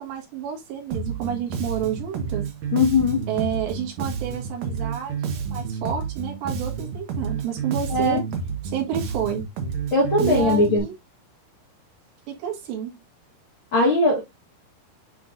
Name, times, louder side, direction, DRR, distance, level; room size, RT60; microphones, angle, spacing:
voice 1, 0.0-2.4 3.3-8.2 8.6-9.5 10.2-11.0 12.3-13.0, right 8 dB, 90° right, 4.0 m, -30 dB
Bass guitar, 0.9-10.8, right 6 dB, 70° right, 1.6 m, -30 dB
voice 2, 2.7-3.2 7.9-8.2 9.9-10.8 13.7-14.2, left 2 dB, 75° left, 1.2 m, -19 dB
9.5 x 3.8 x 2.6 m
omnidirectional pair, 4.8 m